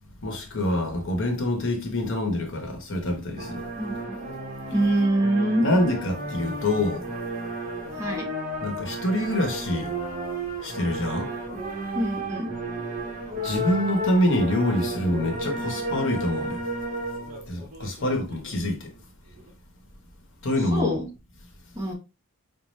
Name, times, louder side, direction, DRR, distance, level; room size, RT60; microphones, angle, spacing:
voice 1, 0.2-3.6 5.6-7.1 8.6-10.0 10.6-11.3 13.4-16.6 17.5-18.9 20.4-21.0, left 1 dB, 60° left, 1.0 m, -26 dB
sound 1, 3.4-18.6 18.9-19.0 19.4-19.5 21.2-21.3, right 1 dB, 40° right, 1.0 m, -33 dB
voice 2, 3.8-4.2 4.7-5.6 7.9-8.3 11.9-12.5 20.7-21.1 21.7-21.9, right 1 dB, 15° right, 0.9 m, -25 dB
5.2 x 2.1 x 3.1 m
head